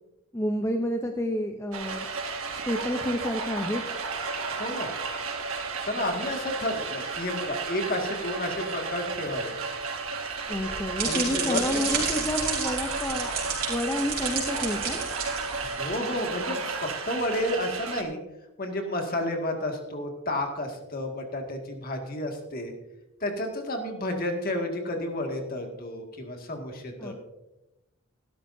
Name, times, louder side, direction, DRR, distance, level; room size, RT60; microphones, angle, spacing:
voice 1, 0.3-2.1 2.5-3.8 10.5-13.3 13.7-15.1 27.0-27.1, left 1 dB, 15° left, 4 dB, 0.6 m, -29 dB
sound 1, 1.7-18.0, right 4 dB, 70° right, 1.7 m, -33 dB
voice 2, 4.5-4.9 5.8-9.5 11.0-11.8 15.6-18.2 18.6-22.7 23.2-27.1, left 1 dB, 40° left, 3 dB, 2.0 m, -31 dB
sound 2, 10.5-15.9, right 5 dB, 40° right, 4.5 m, -31 dB
16.0 x 12.5 x 2.7 m, 0.96 s
head